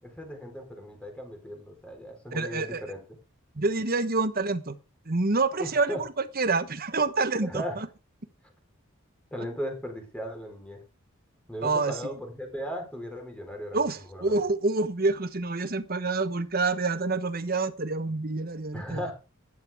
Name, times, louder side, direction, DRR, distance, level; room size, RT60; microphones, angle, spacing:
voice 1, 0.0-3.0 5.6-6.0 7.4-7.8 9.3-10.8 11.5-14.4 18.7-19.1, equal, 5° left, 3 dB, 4.2 m, -37 dB
voice 2, 2.3-2.8 3.6-4.8 5.1-6.1 6.4-7.9 11.6-12.0 13.7-19.0, right 3 dB, 45° right, 12 dB, 1.2 m, -27 dB
14.5 x 11.5 x 3.6 m, 0.30 s
head